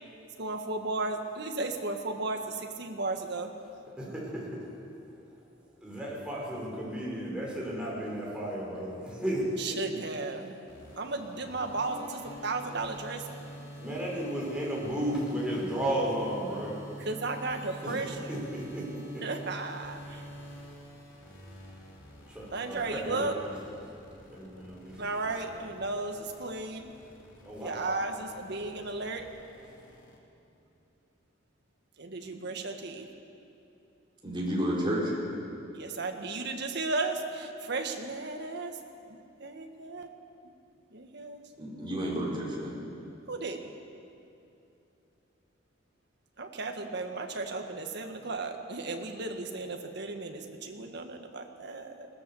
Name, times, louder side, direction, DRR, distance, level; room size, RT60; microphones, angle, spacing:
voice 1, 0.4-3.5 9.6-10.6 11.0-13.5 17.0-18.3 19.2-20.2 22.5-23.4 25.0-26.9 27.6-29.2 32.0-33.1 35.7-38.8 39.1-40.1 40.9-41.4 43.3-43.7 46.4-52.1, right 3 dB, 60° right, 4 dB, 1.8 m, -35 dB
voice 2, 4.0-4.5 5.8-9.8 10.8-10.9 13.8-16.7 17.8-18.8 19.1-19.2 22.3-23.6 24.3-25.5 27.4-27.7, right 1 dB, 5° right, -5 dB, 5.6 m, -34 dB
sound 1, 10.7-30.2, equal, 85° left, 3.8 m, -47 dB
voice 3, 34.2-35.1 41.6-42.8, equal, 25° right, -5 dB, 5.0 m, -31 dB
20.5 x 17.5 x 7.2 m, 2.7 s
head